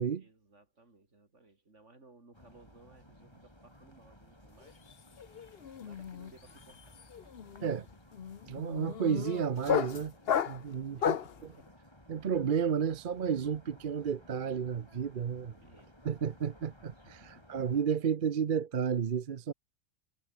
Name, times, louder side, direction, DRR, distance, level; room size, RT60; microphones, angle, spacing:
voice 1, 0.2-4.8 5.8-7.0 11.0-11.7 15.6-16.0 17.1-17.4, right 2 dB, 60° right, 4.2 m, -60 dB
sound 1, 2.3-17.8, left 1 dB, 20° left, 6.1 m, -58 dB
sound 2, 4.6-4.9 5.2-11.4, left 8 dB, 50° left, 1.0 m, -34 dB
voice 2, 8.5-10.1 10.5-11.2 12.1-15.5 16.0-19.5, right 7 dB, 45° right, 0.8 m, -32 dB
omnidirectional pair, 1.4 m